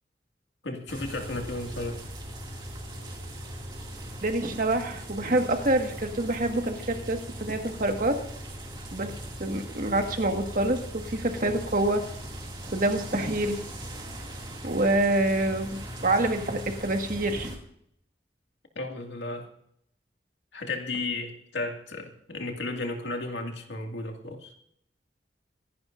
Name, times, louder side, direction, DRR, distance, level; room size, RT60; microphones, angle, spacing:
voice 1, 0.6-2.0 18.8-19.5 20.5-24.5, left 2 dB, 90° left, 3 dB, 2.2 m, -34 dB
Short Neighborhood Rain, 0.9-17.6, right 1 dB, 25° right, 2.4 m, -39 dB
voice 2, 4.2-8.2 8.9-9.1 9.4-12.0 12.7-13.6 14.6-17.5, right 1 dB, 50° right, 4 dB, 1.7 m, -26 dB
25.5 x 11.0 x 2.6 m, 0.71 s
head